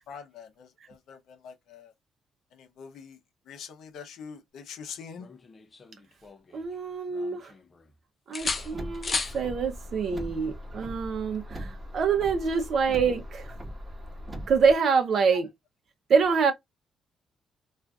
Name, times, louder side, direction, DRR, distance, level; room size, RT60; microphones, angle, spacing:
voice 1, 0.1-1.9 2.5-3.2 3.5-5.3 12.7-12.8, left 6 dB, 80° left, 0.6 m, -44 dB
sound 1, 5.2-6.7 7.1-7.9 8.3-9.4 11.3-11.5, left 4 dB, 25° left, 0.5 m, -35 dB
voice 2, 6.5-7.5 8.3-13.5 14.5-15.5 16.1-16.5, right 5 dB, 50° right, 0.7 m, -25 dB
Car, 8.4-14.7, equal, 20° right, 1.1 m, -40 dB
2.4 x 2.4 x 3.4 m
cardioid pair, 150°, 0 cm